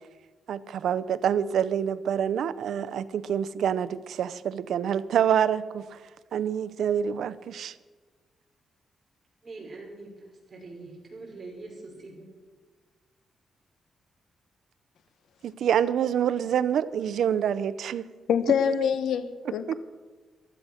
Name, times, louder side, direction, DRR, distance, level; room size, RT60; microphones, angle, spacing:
voice 1, 0.5-6.0 6.3-7.8 15.4-18.0 19.5-19.7, right 9 dB, 75° right, 0.6 m, -27 dB
voice 2, 9.4-12.3, right 3 dB, 30° right, 6.0 m, -43 dB
voice 3, 18.3-19.7, left 7 dB, 85° left, 1.1 m, -25 dB
14.5 x 12.5 x 6.5 m
wide cardioid pair, 150°, 0 cm